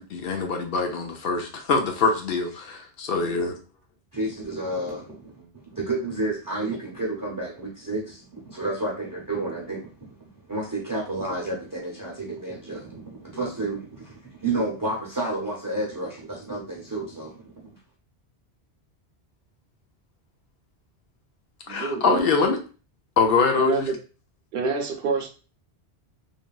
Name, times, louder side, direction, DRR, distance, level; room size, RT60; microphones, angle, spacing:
voice 1, 0.1-3.6 21.7-22.6 23.2-23.9, left 4 dB, 65° left, 4 dB, 0.7 m, -23 dB
voice 2, 4.1-8.1 8.3-9.9 10.5-17.5, right 2 dB, 25° right, -3 dB, 0.5 m, -30 dB
voice 3, 21.7-22.6 23.6-23.9 24.5-25.3, right 4 dB, 65° right, 2 dB, 0.8 m, -27 dB
3.3 x 2.2 x 2.3 m, 0.35 s
omnidirectional pair, 1.1 m